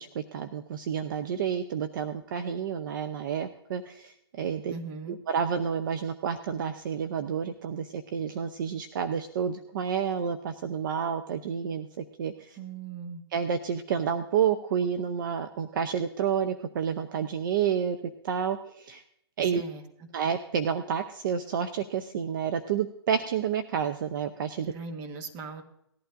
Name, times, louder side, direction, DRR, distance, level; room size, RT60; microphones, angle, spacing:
voice 1, 0.0-4.7 5.1-12.6 13.3-18.0 18.2-19.0 19.4-19.6 20.1-24.7, right 7 dB, 50° right, 9 dB, 0.7 m, -30 dB
voice 2, 4.7-5.2 12.6-13.2 19.4-19.8 24.6-25.6, right 4 dB, 25° right, 5 dB, 1.3 m, -39 dB
18.5 x 11.5 x 2.6 m, 0.75 s
hypercardioid pair, 135°, 14 cm